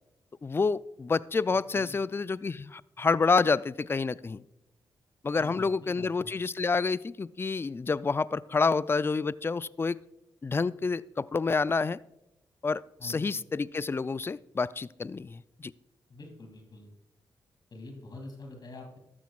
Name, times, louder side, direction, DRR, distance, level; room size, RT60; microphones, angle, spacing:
voice 1, 0.4-4.4 5.2-10.0 10.4-12.0 12.6-15.7, left 4 dB, 25° left, 18 dB, 0.3 m, -28 dB
voice 2, 5.4-6.3 13.0-13.3 16.1-16.9 17.7-19.0, left 2 dB, 50° left, 3 dB, 2.5 m, -45 dB
13.5 x 12.5 x 2.4 m, 0.87 s
supercardioid pair, 55°, 9 cm